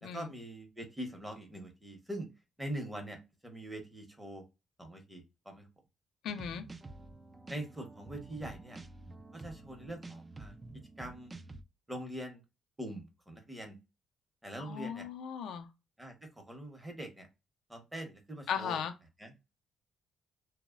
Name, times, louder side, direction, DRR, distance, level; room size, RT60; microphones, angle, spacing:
voice 1, 0.0-2.3 2.6-4.4 4.8-5.7 7.5-8.8 9.3-10.6 11.0-11.3 11.9-12.4 12.8-13.8 14.4-15.1 16.0-17.3 17.7-18.8 19.2-19.3, right 1 dB, 10° right, 0.8 m, -43 dB
voice 2, 6.2-6.6 14.6-15.7 18.5-18.9, left 7 dB, 80° left, 0.4 m, -37 dB
sound 1, 6.3-11.6, right 2 dB, 25° right, 0.3 m, -49 dB
3.0 x 2.0 x 2.3 m
cardioid pair, 90°, 0 cm